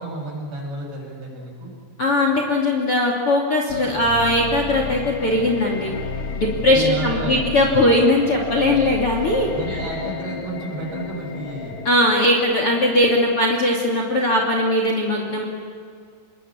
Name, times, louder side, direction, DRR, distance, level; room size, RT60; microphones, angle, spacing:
voice 1, 0.0-1.7 6.7-7.4 9.5-11.8, right 2 dB, 60° right, -1 dB, 9.4 m, -31 dB
voice 2, 2.0-5.9 6.4-9.8 11.8-15.4, left 1 dB, 35° left, 1 dB, 2.9 m, -19 dB
sound 1, 3.7-12.7, left 4 dB, 75° left, 1.2 m, -32 dB
28.0 x 21.5 x 8.8 m, 2.1 s
omnidirectional pair, 5.5 m